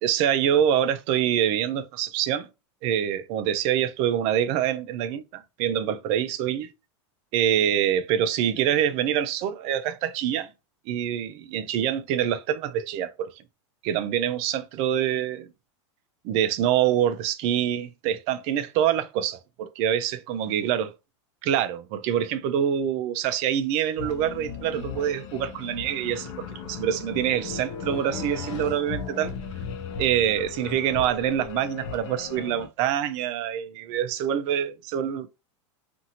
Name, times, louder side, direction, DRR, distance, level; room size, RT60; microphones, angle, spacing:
voice 1, 0.0-2.5 2.8-6.7 7.3-10.5 10.9-13.3 13.8-15.5 16.2-20.9 21.4-26.3 26.6-29.3 30.0-35.3, right 10 dB, 45° right, 0.4 m, -25 dB
sound 1, 24.0-32.7, left 6 dB, 70° left, 0.7 m, -36 dB
2.7 x 2.5 x 2.8 m
supercardioid pair, 145°, 16 cm